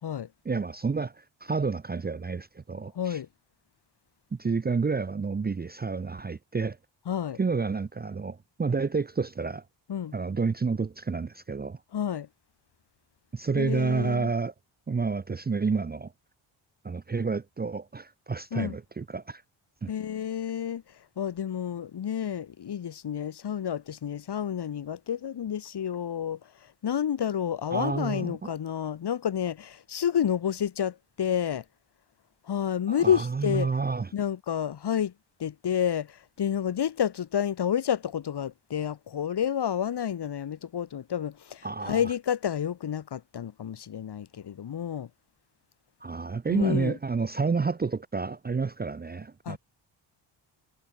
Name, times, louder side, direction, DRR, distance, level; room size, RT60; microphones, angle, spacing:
voice 1, 0.4-3.2 4.3-6.8 7.4-9.6 10.1-11.8 13.3-14.5 14.9-16.1 16.8-19.4 19.8-19.9 27.7-28.5 32.9-34.1 41.6-42.0 46.0-49.6, right 4 dB, 20° right, 0.8 m, -29 dB
voice 2, 2.9-3.3 7.1-7.4 9.9-10.2 11.9-12.3 13.6-14.3 18.5-18.8 19.9-31.7 32.4-33.7 34.1-35.1 35.4-45.1 46.5-47.0 49.5-49.6, left 9 dB, 55° left, 3.8 m, -30 dB
cardioid pair, 125°, 48 cm